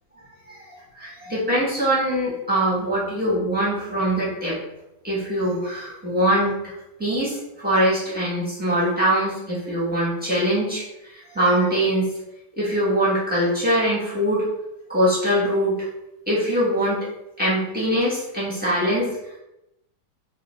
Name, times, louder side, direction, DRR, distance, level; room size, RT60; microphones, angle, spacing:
voice 1, 0.9-4.6 5.0-6.7 7.0-12.1 12.5-14.4 14.9-15.8 16.3-17.1 17.4-19.1, equal, 10° right, -9 dB, 0.5 m, -22 dB
3.3 x 2.4 x 3.2 m, 0.89 s
omnidirectional pair, 2.1 m